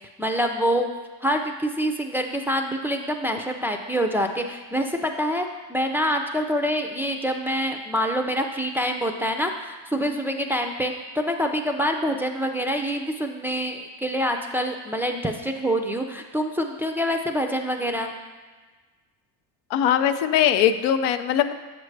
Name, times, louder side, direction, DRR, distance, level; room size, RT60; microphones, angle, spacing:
voice 1, 0.2-0.8 1.2-18.1, equal, 5° right, 3 dB, 0.3 m, -26 dB
voice 2, 19.7-21.5, left 9 dB, 85° left, 10 dB, 0.5 m, -21 dB
7.4 x 6.1 x 3.3 m, 1.3 s
cardioid pair, 105°, 42 cm